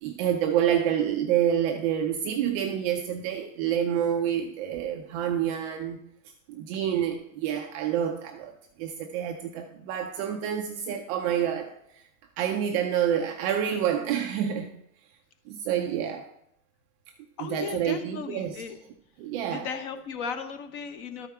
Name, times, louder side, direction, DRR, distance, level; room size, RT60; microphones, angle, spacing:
voice 1, 0.0-6.0 6.5-11.7 12.4-14.7 15.5-16.3 17.4-18.6 19.2-19.7, right 9 dB, 25° right, 4 dB, 0.4 m, -28 dB
voice 2, 17.4-18.8 19.5-21.3, left 6 dB, 40° left, 8 dB, 1.0 m, -36 dB
12.5 x 4.7 x 4.5 m, 0.75 s
hypercardioid pair, 135°, 43 cm